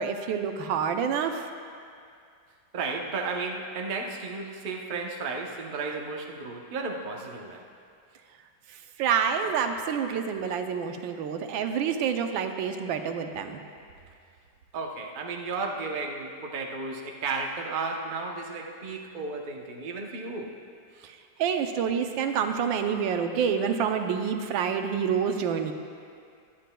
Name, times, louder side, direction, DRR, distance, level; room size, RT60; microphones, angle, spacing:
voice 1, 0.0-1.5 9.0-13.6 21.4-25.7, right 7 dB, 85° right, 6 dB, 1.4 m, -27 dB
voice 2, 2.7-7.7 14.7-20.5, right 4 dB, 45° right, 1 dB, 0.7 m, -33 dB
22.5 x 9.3 x 2.2 m, 2.3 s
omnidirectional pair, 2.0 m